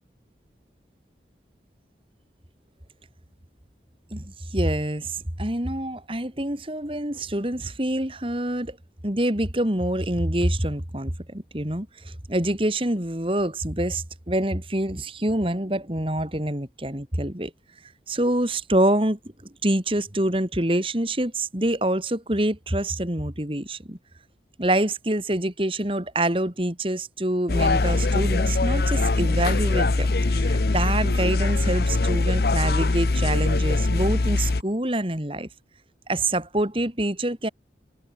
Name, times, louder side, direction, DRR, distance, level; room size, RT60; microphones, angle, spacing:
voice 1, 4.1-8.8 9.0-17.5 18.1-24.0 24.6-35.5 36.1-37.5, right 1 dB, 30° right, 2.9 m, -26 dB
sound 1, 27.5-34.6, left 2 dB, 60° left, 0.8 m, -22 dB
head